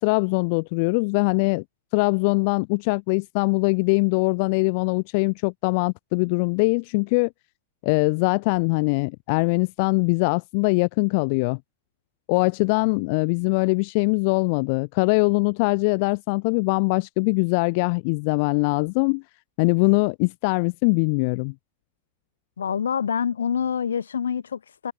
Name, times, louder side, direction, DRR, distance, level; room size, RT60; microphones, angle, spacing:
voice 1, 0.0-1.6 1.9-7.3 7.8-11.6 12.3-19.2 19.6-21.5, left 31 dB, 45° left, 0.4 m, -22 dB
voice 2, 22.6-24.9, left 7 dB, 70° left, 1.0 m, -26 dB
figure-of-eight pair, 90°, 0 cm